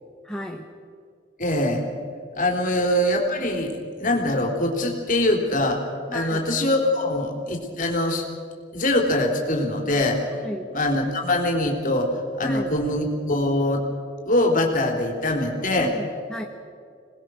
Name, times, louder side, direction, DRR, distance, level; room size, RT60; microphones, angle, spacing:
voice 1, 0.2-0.7 2.7-2.8 6.1-6.4 10.4-10.7 12.4-12.7 15.8-16.4, equal, 5° left, 1 dB, 1.2 m, -34 dB
voice 2, 1.4-1.8 2.4-3.7 4.0-5.8 6.1-8.2 8.7-10.3 10.7-13.8 14.3-15.9, left 1 dB, 40° left, 1 dB, 3.7 m, -23 dB
27.0 x 20.0 x 6.5 m, 2.2 s
head